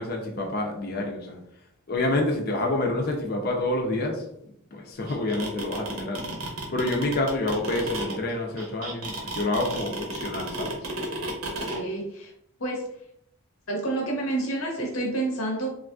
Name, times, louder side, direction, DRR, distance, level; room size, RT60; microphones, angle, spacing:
voice 1, 0.0-1.4 1.9-4.2 4.7-10.8, left 2 dB, 45° left, 2 dB, 0.5 m, -28 dB
sound 1, 5.1-11.8, right 2 dB, 80° right, 0.8 m, -32 dB
voice 2, 11.5-12.3 12.6-12.9 13.7-15.7, right 2 dB, 75° left, 0 dB, 0.8 m, -29 dB
3.2 x 2.5 x 2.3 m, 0.74 s
head